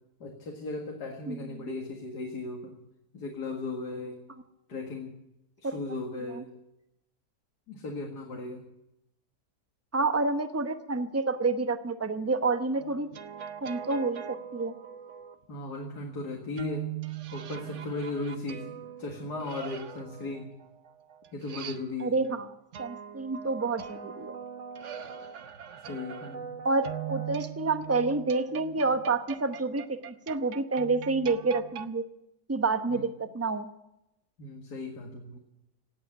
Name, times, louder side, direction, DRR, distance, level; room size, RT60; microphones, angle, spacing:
voice 1, 0.2-2.8 3.1-4.2 4.7-5.1 5.6-6.5 7.7-8.7 15.5-16.9 17.3-18.7 19.0-20.5 21.3-22.2 25.9-26.4 32.9-33.0 34.4-35.4, left 3 dB, 65° left, 1 dB, 2.4 m, -36 dB
voice 2, 1.3-1.7 5.6-5.8 6.3-6.4 9.9-13.1 13.6-14.7 22.0-22.5 22.8-24.3 26.6-32.0 32.5-33.7, right 3 dB, 15° right, 9 dB, 0.6 m, -29 dB
sound 1, 12.8-15.3 16.6-22.3 22.7-31.9, right 9 dB, 55° right, 0.9 m, -41 dB
17.5 x 8.5 x 9.9 m, 0.87 s
omnidirectional pair, 1.9 m